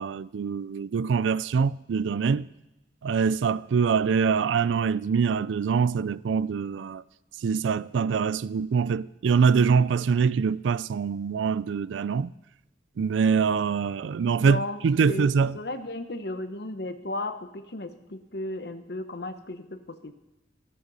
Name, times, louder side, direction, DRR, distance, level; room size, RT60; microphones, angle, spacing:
voice 1, 0.0-2.5 3.0-7.0 7.4-12.3 13.0-15.6, right 6 dB, 85° right, 0.4 m, -24 dB
voice 2, 14.4-20.1, left 2 dB, 60° left, 1.0 m, -35 dB
13.5 x 13.5 x 4.1 m
head